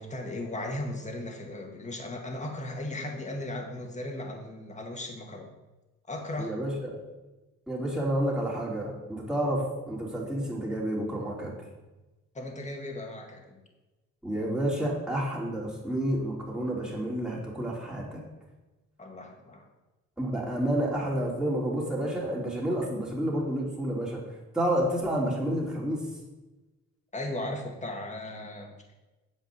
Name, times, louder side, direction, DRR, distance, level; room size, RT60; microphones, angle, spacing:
voice 1, 0.0-5.5 6.1-6.6 12.3-13.6 19.0-19.7 27.1-28.9, left 1 dB, 25° left, 2 dB, 2.0 m, -37 dB
voice 2, 6.4-7.0 7.7-11.5 14.2-18.2 20.2-24.2 24.5-26.0, right 1 dB, ahead, -4 dB, 3.3 m, -30 dB
8.1 x 5.3 x 7.4 m, 1.1 s
cardioid pair, 90°, 30 cm